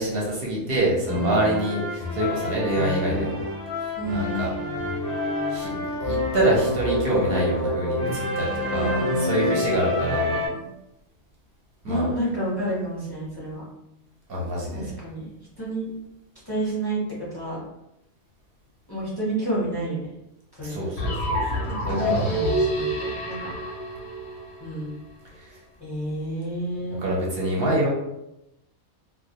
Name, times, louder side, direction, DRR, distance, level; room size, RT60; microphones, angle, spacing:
voice 1, 0.0-3.4 4.1-4.5 5.5-10.3 11.8-12.1 14.3-14.9 20.6-22.3 25.4-25.5 27.0-27.9, right 1 dB, 55° right, -4 dB, 0.7 m, -26 dB
sound 1, 1.1-10.5, left 2 dB, ahead, 0.8 m, -28 dB
voice 2, 4.0-4.6 8.7-9.5 9.9-10.0 10.3-10.7 11.8-13.6 14.7-15.3 15.6-15.9 16.5-17.0 17.3-17.6 18.9-20.1 20.6-20.7 21.8-23.5 24.6-25.0 25.8-27.0, right 1 dB, 30° left, -8 dB, 0.5 m, -30 dB
sound 2, 21.0-24.9, equal, 65° left, 0.7 m, -27 dB
2.2 x 2.1 x 2.7 m, 0.87 s
omnidirectional pair, 1.4 m